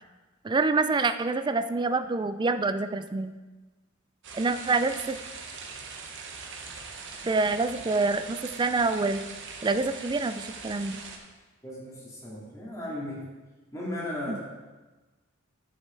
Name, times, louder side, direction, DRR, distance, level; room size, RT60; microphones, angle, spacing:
voice 1, 0.4-3.3 4.3-5.2 7.2-9.2 9.6-11.0 14.3-14.4, right 3 dB, 20° right, 10 dB, 0.4 m, -26 dB
sound 1, 4.2-11.2, right 4 dB, 60° right, 1.2 m, -41 dB
voice 2, 11.6-13.2 13.7-14.4, left 1 dB, 15° left, -5 dB, 2.6 m, -36 dB
10.5 x 6.5 x 4.5 m, 1.2 s
head